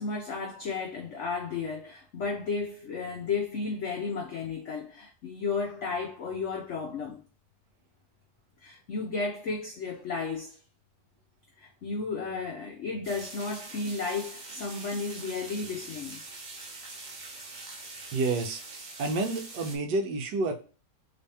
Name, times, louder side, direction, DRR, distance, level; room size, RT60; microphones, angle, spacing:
voice 1, 0.0-7.2 8.6-10.6 11.6-16.2, left 4 dB, 80° left, 0.6 m, -33 dB
sound 1, 13.0-19.8, right 3 dB, 60° right, 0.4 m, -44 dB
voice 2, 18.1-18.6 19.0-20.6, right 3 dB, 75° right, 1.3 m, -29 dB
3.3 x 3.2 x 2.7 m
omnidirectional pair, 1.9 m